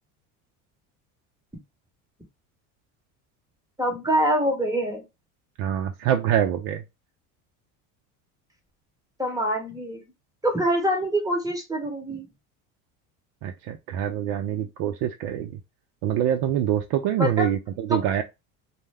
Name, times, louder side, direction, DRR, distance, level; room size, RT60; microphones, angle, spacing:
voice 1, 3.8-5.0 9.2-10.0 10.4-12.3 17.2-17.5 17.9-18.1, equal, 10° right, 0.9 m, -25 dB
voice 2, 5.6-6.8 13.4-15.6 16.0-18.2, right 10 dB, 60° right, 0.5 m, -25 dB
2.1 x 2.1 x 3.3 m
supercardioid pair, 90°, 44 cm